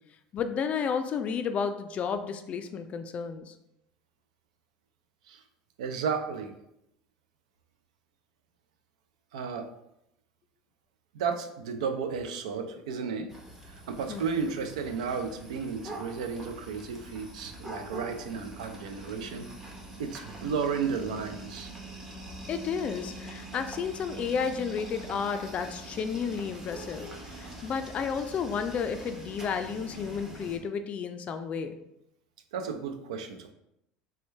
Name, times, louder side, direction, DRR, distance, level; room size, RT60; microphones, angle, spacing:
voice 1, 0.3-3.5 14.1-14.3 22.5-27.1 27.4-31.8, left 6 dB, 40° left, 9 dB, 0.3 m, -32 dB
voice 2, 5.8-6.5 9.3-9.7 11.1-13.3 13.7-19.5 20.0-21.7 32.5-33.5, right 6 dB, 85° right, 7 dB, 0.4 m, -33 dB
sound 1, 13.3-30.6, right 1 dB, 15° right, 0.8 m, -44 dB
3.0 x 2.2 x 3.2 m, 0.80 s
supercardioid pair, 100°, 4 cm